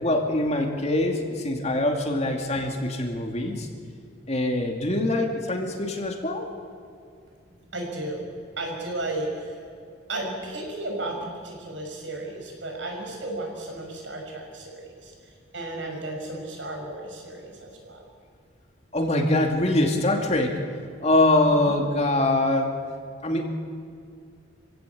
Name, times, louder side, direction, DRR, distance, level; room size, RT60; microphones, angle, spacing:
voice 1, 0.0-3.7 4.3-6.5 18.9-20.6 21.0-22.7 23.2-23.4, left 1 dB, 35° left, 2 dB, 2.5 m, -23 dB
voice 2, 7.5-9.6 10.1-18.1 21.5-21.8, right 2 dB, 75° right, 1 dB, 6.2 m, -34 dB
26.0 x 16.5 x 8.4 m, 2.2 s
head